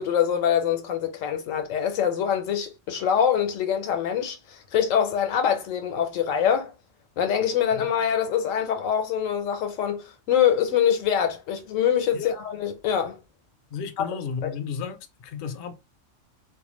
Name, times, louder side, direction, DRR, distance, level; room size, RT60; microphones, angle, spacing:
voice 1, 0.0-6.7 7.2-13.2 14.0-14.1 14.4-14.5, left 8 dB, 90° left, 1.0 m, -24 dB
voice 2, 13.7-15.7, left 6 dB, 60° left, 0.5 m, -33 dB
2.4 x 2.2 x 3.0 m
omnidirectional pair, 1.3 m